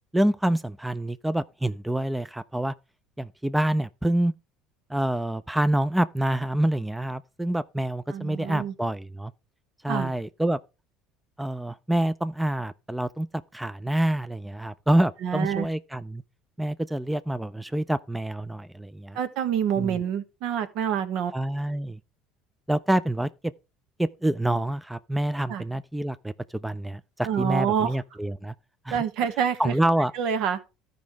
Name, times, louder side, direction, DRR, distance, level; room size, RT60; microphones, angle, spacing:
voice 1, 0.1-2.7 3.2-4.3 4.9-9.3 9.8-10.6 11.4-13.3 13.5-16.2 16.6-19.2 19.8-20.0 21.3-22.0 22.7-23.3 24.0-28.5 28.9-29.0 29.6-30.1, right 1 dB, 5° right, 0.5 m, -27 dB
voice 2, 8.1-8.7 9.9-10.1 15.2-15.7 19.1-21.3 25.5-25.6 27.2-28.0 28.9-29.7 30.1-30.6, right 8 dB, 65° right, 1.2 m, -27 dB
14.0 x 5.2 x 3.5 m
hypercardioid pair, 80°, 0 cm